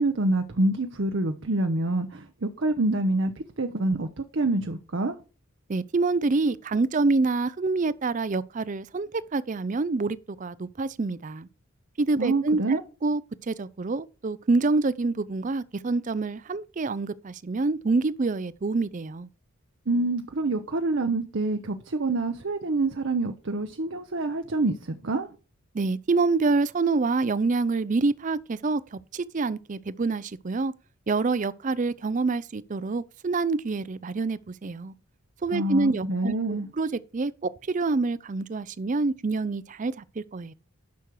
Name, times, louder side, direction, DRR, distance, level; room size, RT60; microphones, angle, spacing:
voice 1, 0.0-5.2 12.2-12.8 19.9-25.3 35.5-36.7, right 2 dB, 55° right, 0.7 m, -26 dB
voice 2, 5.7-11.5 12.0-19.3 25.7-30.7 31.1-34.9 35.4-40.5, right 3 dB, 35° right, 0.4 m, -27 dB
10.5 x 6.3 x 4.7 m
head